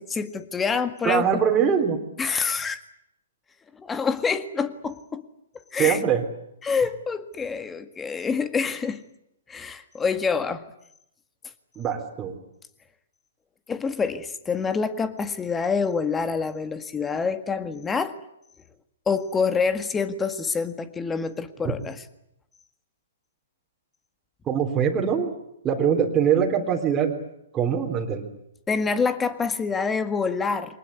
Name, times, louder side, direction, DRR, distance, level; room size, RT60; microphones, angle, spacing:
voice 1, 0.0-1.2 2.2-2.8 3.7-5.2 5.7-6.0 6.6-9.0 9.5-10.7 13.7-18.2 19.1-22.0 28.7-30.8, left 5 dB, 15° left, 11 dB, 1.8 m, -26 dB
voice 2, 1.0-2.0 5.8-6.2 11.8-12.4 24.5-25.3 25.6-27.2 27.5-28.2, right 8 dB, 20° right, 1 dB, 3.7 m, -22 dB
24.0 x 20.0 x 9.6 m, 0.81 s
hypercardioid pair, 125°, 0 cm